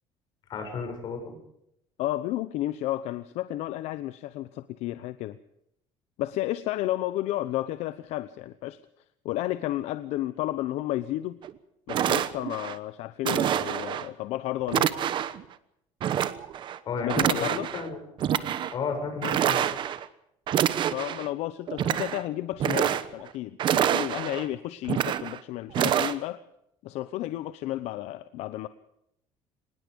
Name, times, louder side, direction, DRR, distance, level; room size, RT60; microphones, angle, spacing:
voice 1, 0.5-1.3 16.8-17.5 17.7-18.0 18.3-18.4 18.7-19.7, left 5 dB, 40° left, 4 dB, 7.4 m, -33 dB
voice 2, 2.0-5.4 6.2-8.8 9.2-11.4 11.9-14.9 17.0-17.7 19.2-19.4 20.9-26.4 26.8-28.7, left 15 dB, 70° left, 13 dB, 0.9 m, -32 dB
sound 1, 11.4-11.5 11.9-12.7 13.2-14.1 14.7-15.4 16.0-16.8 17.1-17.8 18.2-18.7 19.2-20.0 20.5-21.3 21.7-22.2 22.5-23.3 23.6-24.4 24.9-25.4 25.7-26.1, right 10 dB, 45° right, 1.1 m, -26 dB
25.0 x 20.0 x 5.3 m, 0.77 s
cardioid pair, 160°, 11 cm